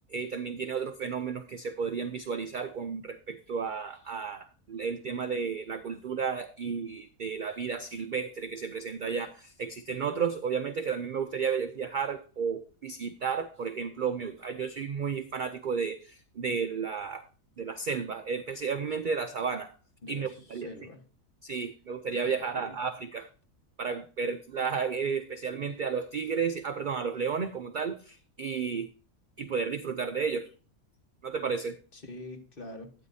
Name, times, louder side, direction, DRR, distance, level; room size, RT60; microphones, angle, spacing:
voice 1, 0.1-17.2 17.6-19.7 20.1-20.7 21.4-23.3 23.8-28.9 29.4-30.5 31.2-31.8, right 6 dB, 60° right, 9 dB, 0.5 m, -32 dB
voice 2, 20.0-21.0 22.2-22.8 31.9-32.9, left 2 dB, 40° left, 4 dB, 1.4 m, -45 dB
12.5 x 9.1 x 2.7 m, 0.37 s
omnidirectional pair, 1.4 m